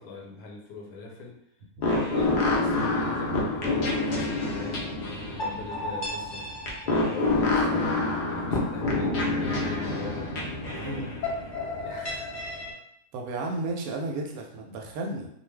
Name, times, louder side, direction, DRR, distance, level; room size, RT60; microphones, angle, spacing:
voice 1, 0.0-1.4 1.9-6.5 6.8-10.3 10.6-11.1 11.8-12.4, left 3 dB, 80° left, 0 dB, 1.1 m, -42 dB
sound 1, 1.8-12.7, left 2 dB, 55° left, 0.5 m, -28 dB
voice 2, 10.7-11.2 13.1-15.3, right 2 dB, 80° right, 1 dB, 1.0 m, -33 dB
2.4 x 2.2 x 3.3 m, 0.77 s
omnidirectional pair, 1.6 m